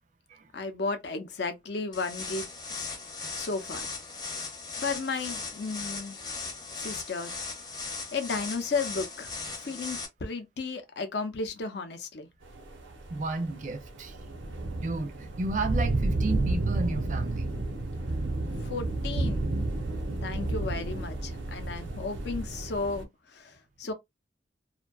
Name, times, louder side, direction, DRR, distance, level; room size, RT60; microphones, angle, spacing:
voice 1, 0.5-2.4 2.8-2.9 3.4-3.9 4.8-6.2 6.8-7.4 8.1-9.3 9.6-12.3 18.6-19.6 20.2-23.9, left 4 dB, 65° left, 0.6 m, -34 dB
sound 1, 1.9-10.1, left 4 dB, 20° left, 0.6 m, -38 dB
sound 2, 12.5-23.0, right 2 dB, 90° right, 0.7 m, -31 dB
voice 2, 13.1-14.1 14.7-17.5, right 3 dB, 40° right, 0.4 m, -33 dB
2.5 x 2.2 x 2.3 m
head